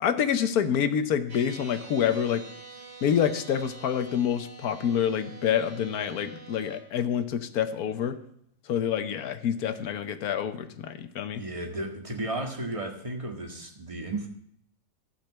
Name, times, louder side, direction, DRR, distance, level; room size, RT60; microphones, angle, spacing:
voice 1, 0.0-2.4 3.0-8.2 8.7-11.4, left 8 dB, 65° left, 10 dB, 1.3 m, -27 dB
sound 1, 1.3-6.8, right 4 dB, 80° right, 2.9 m, -46 dB
voice 2, 11.3-14.3, right 2 dB, 20° right, 1 dB, 1.7 m, -34 dB
13.5 x 5.9 x 7.5 m, 0.70 s
omnidirectional pair, 1.8 m